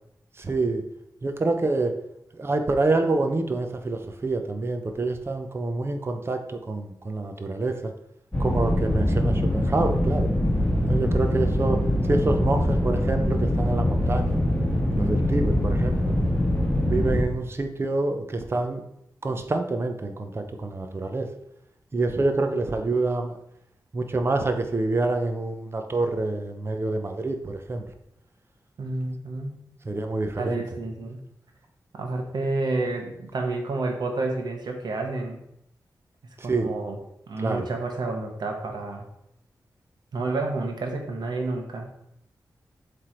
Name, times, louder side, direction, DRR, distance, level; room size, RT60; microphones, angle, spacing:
voice 1, 0.4-0.8 1.2-1.9 2.4-7.9 8.4-10.3 10.9-11.8 12.1-14.4 15.0-16.1 16.8-18.8 19.2-21.3 21.9-23.3 23.9-27.8 29.9-30.6 36.5-36.7 37.4-37.7, right 2 dB, 35° right, 6 dB, 0.7 m, -27 dB
sound 1, 8.3-17.2, left 1 dB, 10° left, 1.7 m, -23 dB
voice 2, 28.8-29.6 30.3-31.2 31.9-35.4 36.4-37.0 37.3-39.0 40.1-41.9, right 3 dB, 85° right, 2 dB, 1.1 m, -30 dB
7.8 x 3.4 x 4.4 m, 0.78 s
wide cardioid pair, 115°, 7 cm